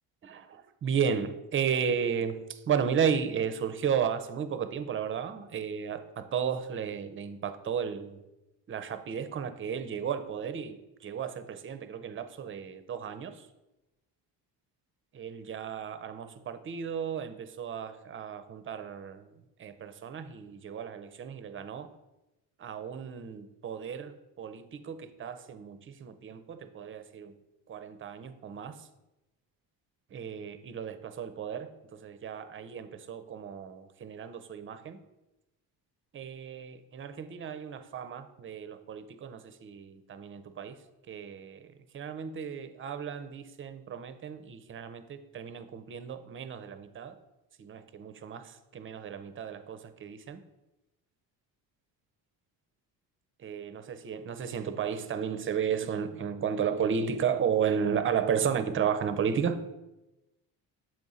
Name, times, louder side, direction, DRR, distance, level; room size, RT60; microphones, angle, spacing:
voice 1, 0.2-8.2 8.7-13.4 15.1-19.2 19.6-21.9 22.6-27.3 27.7-28.7 30.1-35.0 36.1-40.8 41.1-41.7 41.9-47.2 47.6-50.4 53.4-59.7, right 7 dB, 35° right, 10 dB, 0.5 m, -33 dB
7.5 x 3.6 x 4.0 m, 0.98 s
cardioid pair, 110°, 38 cm